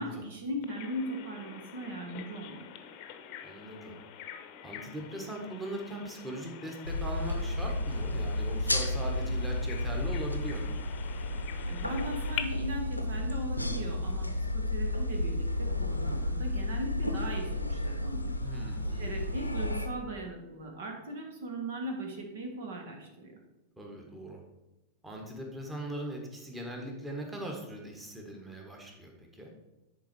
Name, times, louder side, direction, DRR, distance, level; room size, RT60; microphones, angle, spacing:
voice 1, 0.0-2.6 11.6-18.4 19.0-23.4, right 1 dB, 60° right, 2 dB, 1.5 m, -38 dB
Bird vocalization bird call bird song, 0.6-12.4, left 10 dB, 40° left, 0.8 m, -45 dB
voice 2, 3.4-4.0 4.6-10.8 18.4-19.3 23.8-24.4 25.0-29.5, right 1 dB, 10° right, 1 dB, 1.7 m, -40 dB
sound 1, 6.8-19.9, left 1 dB, 85° left, 0.7 m, -32 dB
10.5 x 4.6 x 4.6 m, 1.0 s
figure-of-eight pair, 90°, 0 cm